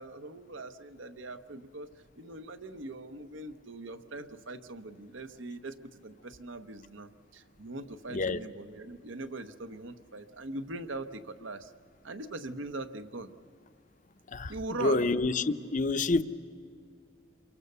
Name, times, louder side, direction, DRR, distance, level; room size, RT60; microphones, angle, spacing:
voice 1, 0.0-5.7 6.0-11.7 12.0-13.3 14.5-15.1, right 2 dB, 75° right, 1.1 m, -41 dB
voice 2, 14.8-16.2, left 3 dB, 40° left, 0.7 m, -27 dB
28.5 x 23.5 x 6.8 m
head